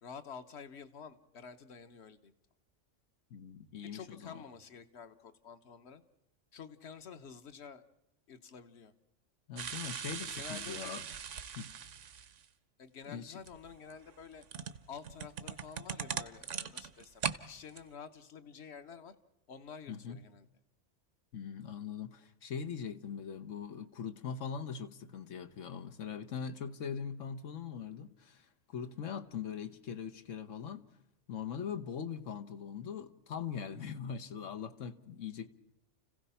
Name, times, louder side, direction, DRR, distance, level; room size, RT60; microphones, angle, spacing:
voice 1, 0.0-2.3 3.9-6.0 6.5-7.8 8.3-8.9 10.4-10.9 12.8-14.4 14.9-19.1 19.5-20.5, left 6 dB, 65° left, 1.3 m, -49 dB
voice 2, 3.3-4.4 9.5-11.0 11.5-11.7 13.1-13.4 19.9-20.2 21.3-30.9 31.3-35.5, left 7 dB, 90° left, 1.4 m, -41 dB
sound 1, 9.6-12.5 13.4-17.4 17.7-17.8, right 7 dB, 75° right, 1.2 m, -40 dB
30.0 x 16.0 x 5.7 m
omnidirectional pair, 1.3 m